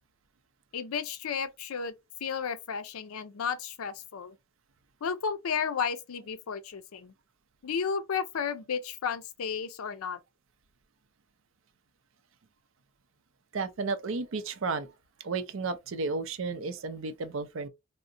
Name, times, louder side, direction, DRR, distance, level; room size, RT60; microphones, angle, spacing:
voice 1, 0.7-1.9 2.2-4.4 5.0-7.1 7.6-10.2, left 6 dB, 80° left, 0.5 m, -33 dB
voice 2, 13.5-14.9 15.2-17.7, right 4 dB, 65° right, 0.5 m, -33 dB
3.7 x 2.1 x 2.6 m
head